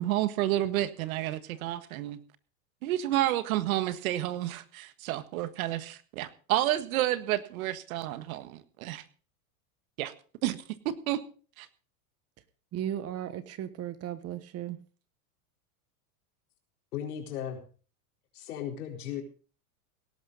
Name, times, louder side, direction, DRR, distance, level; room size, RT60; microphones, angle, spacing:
voice 1, 0.0-2.2 2.8-9.0 10.0-10.1 10.4-11.2 11.6-11.7, right 14 dB, 70° right, 13 dB, 1.6 m, -30 dB
voice 2, 12.7-14.8, right 11 dB, 35° right, 14 dB, 1.3 m, -36 dB
voice 3, 16.9-17.6 18.3-19.2, left 9 dB, 85° left, 3 dB, 4.4 m, -36 dB
18.0 x 11.5 x 4.1 m, 0.39 s
supercardioid pair, 135°, 44 cm